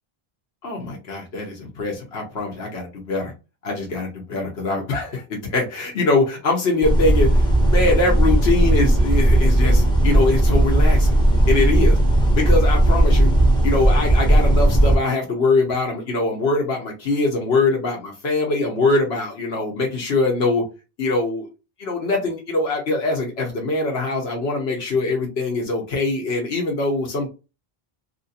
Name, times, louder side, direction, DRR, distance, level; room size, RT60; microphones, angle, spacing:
voice 1, 0.6-3.3 3.6-11.2 11.5-12.0 12.4-13.3 13.6-20.6 21.0-21.5 21.8-27.3, left 3 dB, 85° left, 1.3 m, -23 dB
sound 1, 6.8-15.0, right 1 dB, 5° left, 0.8 m, -16 dB
3.0 x 2.8 x 2.8 m
omnidirectional pair, 1.0 m